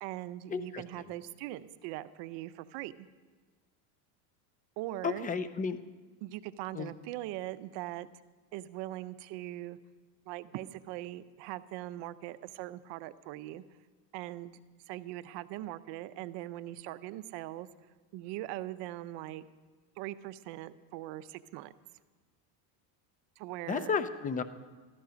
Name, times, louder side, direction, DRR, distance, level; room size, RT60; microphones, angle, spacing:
voice 1, 0.0-2.9 4.8-5.3 6.2-8.1 8.5-9.8 10.3-13.6 14.1-14.6 14.9-17.7 18.1-19.4 20.0-21.7 23.4-23.9, right 15 dB, 60° right, 13 dB, 0.7 m, -41 dB
voice 2, 0.5-1.1 5.0-5.8 6.7-6.9 23.7-24.4, left 6 dB, 20° left, 13 dB, 0.5 m, -33 dB
13.5 x 13.0 x 5.1 m, 1.4 s
supercardioid pair, 130°, 47 cm